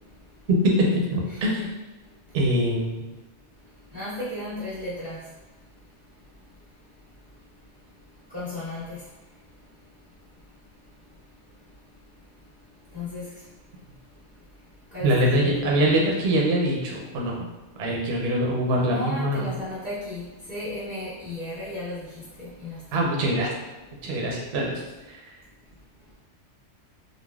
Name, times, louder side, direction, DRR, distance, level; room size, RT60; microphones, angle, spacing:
voice 1, 0.5-1.6 2.3-3.0 15.0-17.4 17.8-19.5 22.9-23.5 24.0-24.7 25.1-25.2, right 1 dB, 65° right, -2 dB, 0.8 m, -23 dB
voice 2, 1.3-1.7 3.9-5.2 8.3-9.0 12.9-13.3 14.9-15.1 15.4-15.7 18.8-23.1, left 1 dB, 20° left, -15 dB, 1.2 m, -34 dB
3.3 x 2.1 x 2.2 m, 1.1 s
omnidirectional pair, 1.3 m